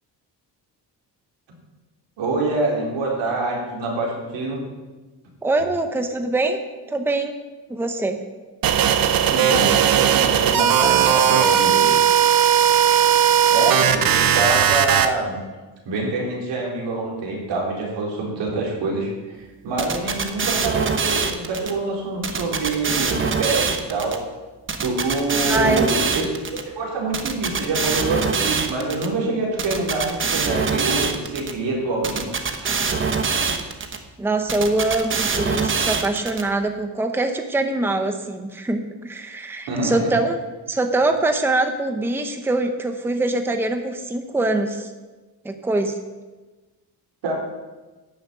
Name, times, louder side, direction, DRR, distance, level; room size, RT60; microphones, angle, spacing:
voice 1, 2.2-4.6 9.3-12.1 13.5-15.4 15.9-19.4 19.6-24.2 24.8-26.3 26.7-32.8 39.7-40.1 47.2-47.3, right 3 dB, 90° right, -2 dB, 4.2 m, -26 dB
voice 2, 5.4-6.6 6.9-7.3 7.7-8.2 25.5-26.0 34.2-40.4 40.7-44.9 45.4-45.9, right 2 dB, 5° right, 6 dB, 0.8 m, -23 dB
sound 1, 8.6-15.1, right 9 dB, 55° right, 0.9 m, -17 dB
sound 2, 19.8-21.7 22.2-24.2 24.7-26.6 27.1-29.1 29.6-31.5 32.0-34.0 34.5-36.4, right 5 dB, 30° right, 1.0 m, -23 dB
11.5 x 7.1 x 8.3 m, 1.2 s
cardioid pair, 165°, 42 cm